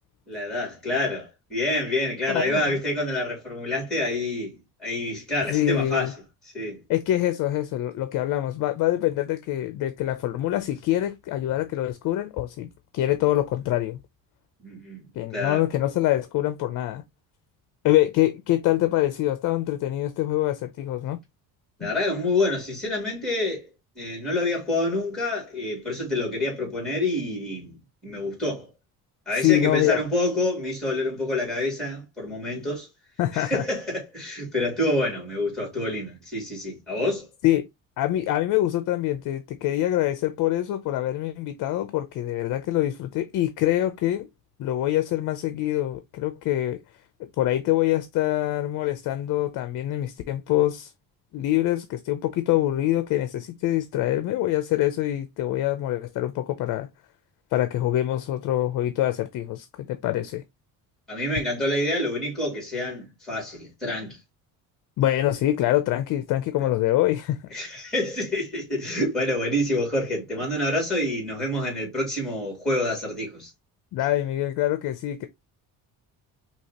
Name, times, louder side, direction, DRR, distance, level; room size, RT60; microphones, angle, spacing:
voice 1, 0.3-6.2 6.4-6.8 14.6-15.0 15.3-15.6 21.8-23.7 24.0-28.7 29.3-32.9 33.3-37.3 61.1-64.2 67.5-73.5, left 1 dB, ahead, 2.6 m, -27 dB
voice 2, 2.3-2.7 5.5-6.1 6.9-12.7 12.9-14.0 15.2-17.0 17.8-21.2 21.8-21.9 29.3-30.0 33.2-33.6 37.4-37.7 38.0-44.3 44.6-46.8 47.4-50.9 51.3-56.9 57.5-60.4 65.0-67.4 73.9-75.3, left 14 dB, 60° left, 0.6 m, -25 dB
4.7 x 2.9 x 2.8 m
cardioid pair, 175°, 36 cm